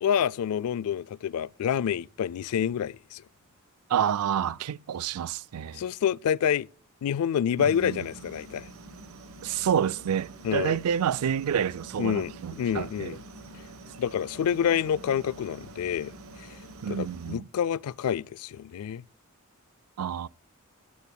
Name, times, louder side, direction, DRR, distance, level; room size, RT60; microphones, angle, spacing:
voice 1, 0.0-3.2 5.7-6.7 7.0-8.7 10.4-10.8 12.0-13.2 14.0-16.1 16.4-16.6 16.9-19.0, left 8 dB, 75° left, 0.3 m, -28 dB
voice 2, 3.9-5.8 7.6-8.0 9.4-13.2 16.8-17.5 20.0-20.3, right 8 dB, 85° right, 0.4 m, -29 dB
sound 1, 7.6-17.4, right 2 dB, 65° right, 1.1 m, -47 dB
17.0 x 8.5 x 2.2 m
head